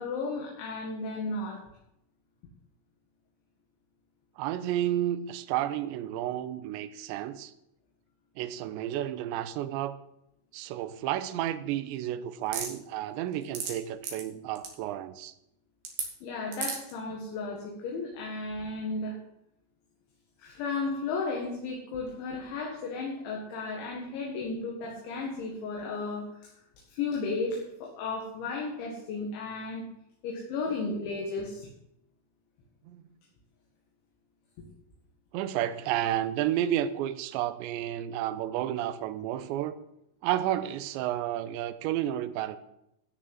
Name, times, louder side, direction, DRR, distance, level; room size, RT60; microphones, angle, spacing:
voice 1, 0.0-1.6 16.2-19.2 20.4-26.5 26.9-29.9 30.2-31.7, left 3 dB, 70° left, 4.1 m, -34 dB
voice 2, 4.4-7.5 8.4-10.0 10.5-15.3 32.9-33.0 35.3-39.8 40.2-42.6, right 12 dB, 80° right, 2.7 m, -31 dB
sound 1, 12.5-12.7 13.3-13.7 14.0-14.2 14.6-14.7 15.8-16.1 16.5-16.9, right 6 dB, 55° right, 3.9 m, -32 dB
13.5 x 6.6 x 7.9 m
omnidirectional pair, 5.7 m